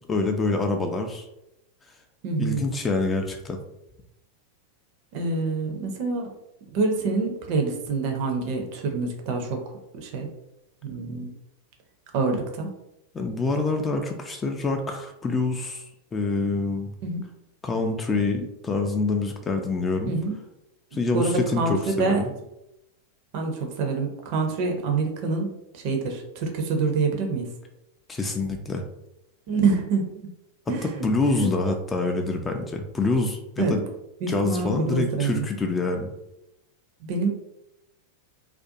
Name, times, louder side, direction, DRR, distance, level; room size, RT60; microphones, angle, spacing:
voice 1, 0.1-1.2 2.4-3.6 13.1-15.8 16.1-16.9 17.6-20.1 20.9-22.3 28.1-28.8 30.8-33.8 34.3-36.1, left 3 dB, 15° left, 4 dB, 0.3 m, -26 dB
voice 2, 2.2-2.7 5.1-6.3 6.7-9.6 9.9-10.3 10.8-11.3 12.1-12.7 17.0-17.2 20.0-20.4 21.1-22.2 23.3-27.5 29.5-30.0 30.7-30.9 31.3-31.5 33.6-33.7 34.2-35.5 37.0-37.3, right 4 dB, 45° right, 3 dB, 0.5 m, -26 dB
2.4 x 2.2 x 2.7 m, 0.87 s
figure-of-eight pair, 90°, 0 cm